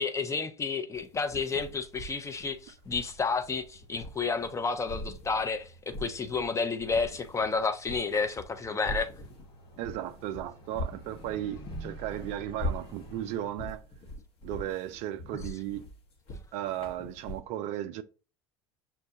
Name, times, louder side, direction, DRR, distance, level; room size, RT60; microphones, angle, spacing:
voice 1, 0.0-9.1, left 4 dB, 20° left, 0.6 m, -31 dB
sound 1, 0.9-4.6 4.9-6.5 6.8-17.4, left 1 dB, 45° left, 1.0 m, -41 dB
sound 2, 1.6-13.5, right 1 dB, 70° left, 1.2 m, -51 dB
voice 2, 9.8-13.8 14.4-15.8 16.5-18.0, right 12 dB, 55° right, 0.4 m, -35 dB
5.7 x 2.2 x 2.8 m
hypercardioid pair, 80°, 14 cm